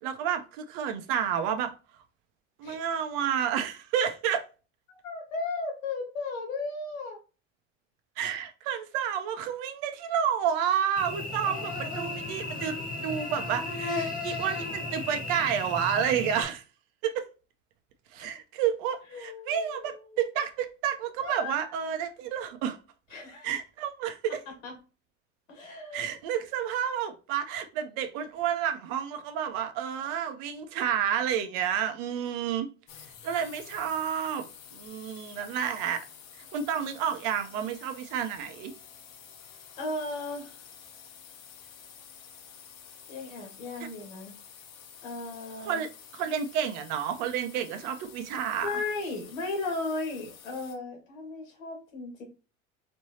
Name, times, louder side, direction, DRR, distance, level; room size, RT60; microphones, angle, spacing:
voice 1, 0.0-1.7 2.6-4.5 8.2-16.6 17.0-17.3 18.1-22.8 23.4-24.4 25.9-32.7 33.2-34.5 34.7-36.0 36.5-38.7 43.8-43.9 45.6-48.8, right 8 dB, 60° right, 0.8 m, -30 dB
voice 2, 4.9-7.2 18.2-18.3 19.1-20.2 21.2-21.7 23.1-23.5 24.6-24.7 25.5-26.1 39.8-40.6 43.1-44.3 45.0-45.8 48.6-52.2, left 3 dB, 85° left, 2.1 m, -36 dB
Cricket / Buzz, 11.0-16.4, left 2 dB, 20° left, 1.1 m, -34 dB
sound 1, 32.9-50.8, left 8 dB, 55° left, 1.1 m, -50 dB
4.3 x 3.2 x 2.8 m
hypercardioid pair, 90°, 39 cm